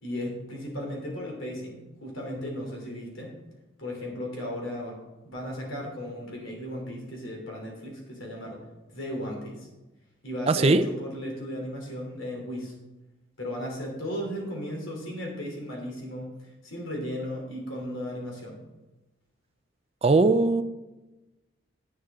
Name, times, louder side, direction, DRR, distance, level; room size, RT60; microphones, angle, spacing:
voice 1, 0.0-3.3 3.8-5.0 5.2-8.6 8.9-9.7 10.2-12.7 13.4-16.3 16.6-18.6, equal, 80° left, -1 dB, 3.1 m, -35 dB
voice 2, 10.5-10.9 20.0-20.6, right 3 dB, 30° right, 11 dB, 0.4 m, -20 dB
10.5 x 9.2 x 3.6 m, 1.1 s
head